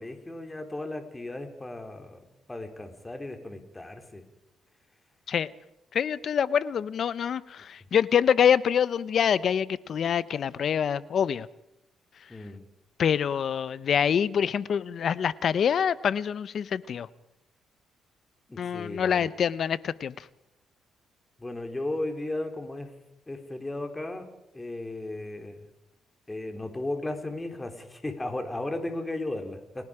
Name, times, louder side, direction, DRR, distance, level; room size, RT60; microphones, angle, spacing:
voice 1, 0.0-2.2 2.5-4.2 12.3-12.6 18.5-19.3 21.4-23.0 23.3-24.3 24.5-25.6 26.3-29.9, left 2 dB, 15° left, 3.4 m, -35 dB
voice 2, 5.9-11.5 13.0-17.1 18.6-20.1, left 8 dB, 60° left, 0.8 m, -25 dB
30.0 x 18.0 x 5.0 m
cardioid pair, 90°, 0 cm